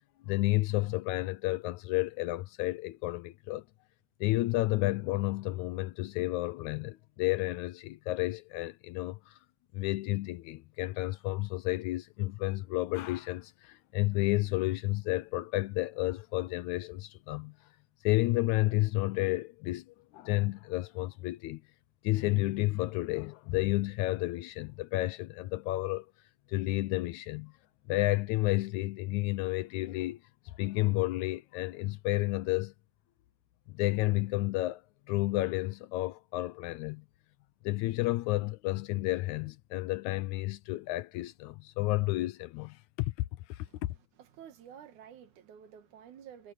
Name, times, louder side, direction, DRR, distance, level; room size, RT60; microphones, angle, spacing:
voice 1, 0.2-3.6 4.2-9.4 9.7-17.5 18.0-21.6 22.0-26.1 26.5-27.5 27.9-30.2 30.6-32.7 33.7-34.8 35.1-37.1 37.6-43.1 43.5-43.7, left 19 dB, 85° left, 2.0 m, -31 dB
voice 2, 44.2-46.5, right 8 dB, 85° right, 3.0 m, -51 dB
omnidirectional pair, 3.3 m